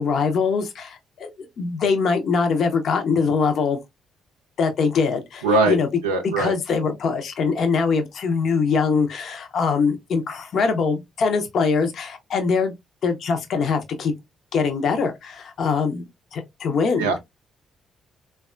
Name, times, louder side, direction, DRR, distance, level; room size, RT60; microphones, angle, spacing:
voice 1, 0.0-3.8 4.6-5.9 6.2-12.7 13.0-14.1 14.5-17.1, left 5 dB, 60° left, 0.5 m, -23 dB
voice 2, 5.4-5.8 6.0-6.5 17.0-17.2, right 3 dB, 90° right, 0.4 m, -20 dB
3.4 x 2.2 x 2.2 m
hypercardioid pair, 45°, 0 cm